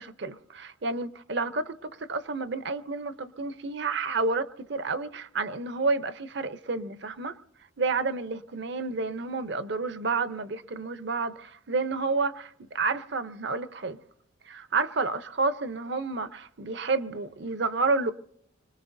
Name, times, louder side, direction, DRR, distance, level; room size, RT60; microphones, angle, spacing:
voice 1, 0.0-7.4 7.8-14.0 14.5-18.1, right 3 dB, 55° right, 0.7 m, -30 dB
25.5 x 20.0 x 2.6 m
head